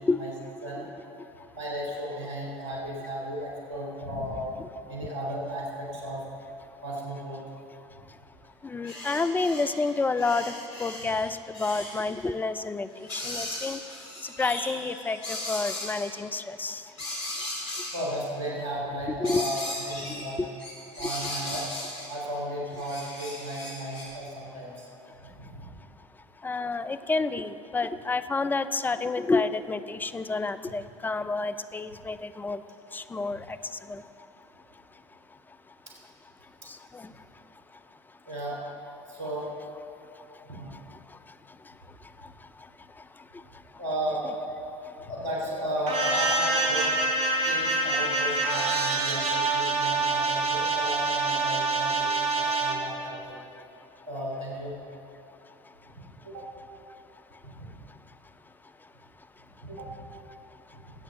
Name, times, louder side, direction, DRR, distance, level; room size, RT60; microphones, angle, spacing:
voice 1, 1.5-4.5 4.9-6.2 6.8-7.4 17.9-20.4 21.0-21.6 22.1-24.8 25.5-25.7 38.2-38.6 39.1-39.5 40.4-40.7 43.8-44.3 45.1-46.9 47.4-53.4 54.1-54.7 56.2-56.5 57.4-57.7 59.6-60.1 60.7-60.8, right 1 dB, 80° right, -3 dB, 3.4 m, -34 dB
voice 2, 8.6-10.5 10.8-13.8 14.2-16.8 19.2-19.5 20.1-20.5 21.0-21.1 26.4-32.6 32.9-33.6 33.9-34.0 36.6-37.1 42.2-42.3, left 3 dB, 10° left, 12 dB, 0.5 m, -29 dB
sound 1, 8.8-9.9 10.2-12.0 13.0-16.1 17.0-18.1 19.2-20.3 20.6-22.1 22.7-24.0, left 1 dB, 75° left, 3.3 m, -37 dB
sound 2, 45.9-52.7, right 3 dB, 40° right, 2.2 m, -26 dB
20.5 x 8.8 x 3.8 m, 3.0 s
hypercardioid pair, 75°, 15 cm